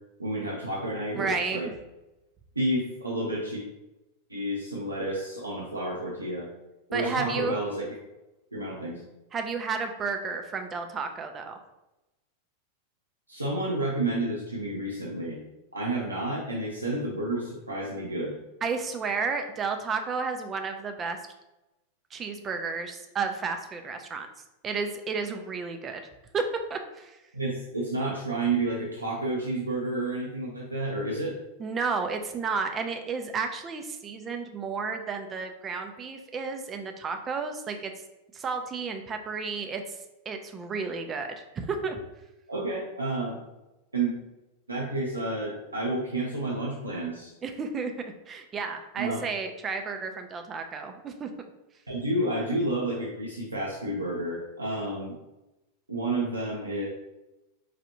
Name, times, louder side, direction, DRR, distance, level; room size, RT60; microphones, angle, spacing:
voice 1, 0.2-1.7 2.6-3.6 4.3-6.5 6.9-7.9 8.5-9.0 13.3-15.4 15.7-18.3 27.3-31.4 42.5-43.3 43.9-44.1 44.7-47.3 49.0-49.2 51.9-55.2 55.9-56.9, right 2 dB, 85° right, -4 dB, 0.6 m, -30 dB
voice 2, 1.2-1.6 6.9-7.6 9.3-11.6 18.6-21.2 22.1-24.3 24.6-26.0 26.3-27.2 31.6-37.9 38.3-42.0 47.4-47.9 48.3-51.3, right 5 dB, 25° right, 5 dB, 0.4 m, -32 dB
4.6 x 2.4 x 2.8 m, 0.96 s
figure-of-eight pair, 90°, 0 cm